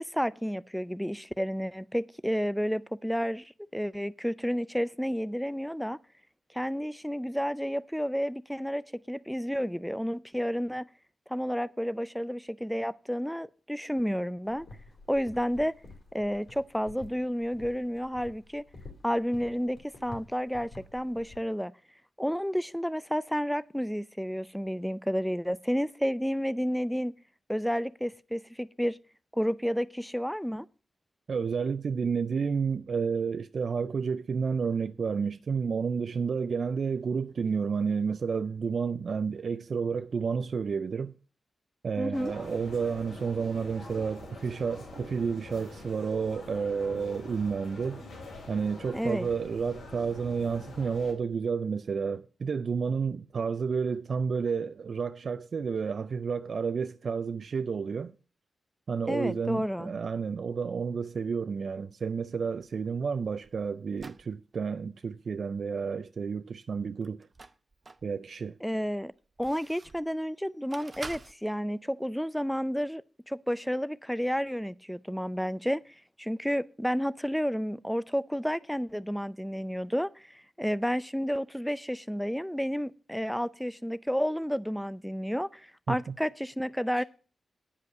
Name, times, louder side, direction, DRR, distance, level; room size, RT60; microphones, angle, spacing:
voice 1, 0.0-6.0 6.5-10.9 11.3-14.7 15.1-15.7 16.1-18.7 19.0-21.7 22.2-27.1 27.5-29.0 29.3-30.7 42.0-42.3 48.9-49.3 59.1-59.9 68.6-69.1 69.4-87.0, equal, ahead, 0.4 m, -31 dB
sound 1, 14.4-21.4, left 2 dB, 70° left, 2.7 m, -50 dB
voice 2, 31.3-41.1 41.8-48.0 48.5-58.1 58.9-67.3 68.0-68.5 85.9-86.1 87.0-87.1, right 5 dB, 65° right, 0.4 m, -31 dB
sound 2, 42.1-51.1, left 2 dB, 90° left, 3.3 m, -45 dB
sound 3, 62.6-64.3 67.0-68.1 68.6-70.1 70.7-71.3, right 3 dB, 40° right, 0.7 m, -47 dB
9.8 x 5.3 x 8.1 m
cardioid pair, 60°, 0 cm